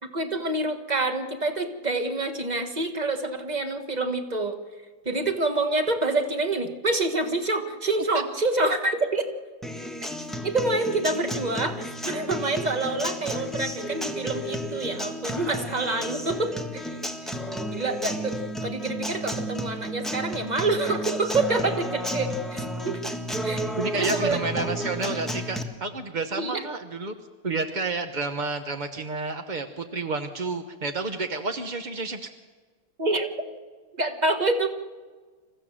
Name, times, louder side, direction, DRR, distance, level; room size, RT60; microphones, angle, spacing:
voice 1, 0.0-4.6 5.0-9.2 10.4-17.0 17.2-17.3 17.7-23.1 23.4-23.7 23.9-24.7 26.4-26.6 33.0-33.3 34.0-34.7, right 2 dB, 25° right, 6 dB, 1.3 m, -27 dB
Acoustic guitar, 9.6-25.6, equal, ahead, 1.1 m, -32 dB
voice 2, 23.7-27.1 27.4-32.3, right 3 dB, 50° right, 7 dB, 0.5 m, -30 dB
27.0 x 15.0 x 7.5 m, 1.4 s
omnidirectional pair, 2.3 m